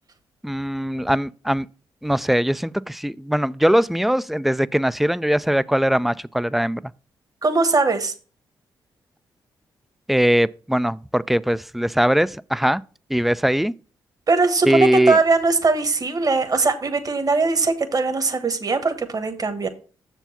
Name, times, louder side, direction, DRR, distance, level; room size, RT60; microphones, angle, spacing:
voice 1, 0.4-1.7 2.0-6.8 10.1-12.8 13.1-13.7 14.6-15.2, equal, ahead, 0.4 m, -20 dB
voice 2, 7.4-8.1 14.3-19.7, right 3 dB, 40° right, 1.3 m, -20 dB
6.8 x 4.6 x 5.8 m
supercardioid pair, 50°, 10 cm